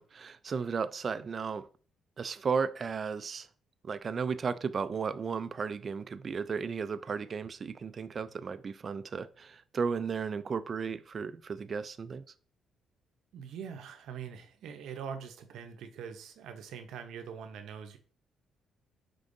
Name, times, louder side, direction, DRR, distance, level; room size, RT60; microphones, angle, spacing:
voice 1, 0.0-1.7 2.2-3.5 3.8-12.2, right 5 dB, 45° right, 14 dB, 0.3 m, -34 dB
voice 2, 13.3-18.0, right 7 dB, 80° right, 7 dB, 0.7 m, -43 dB
5.0 x 3.7 x 2.6 m, 0.41 s
cardioid pair, 90°, 0 cm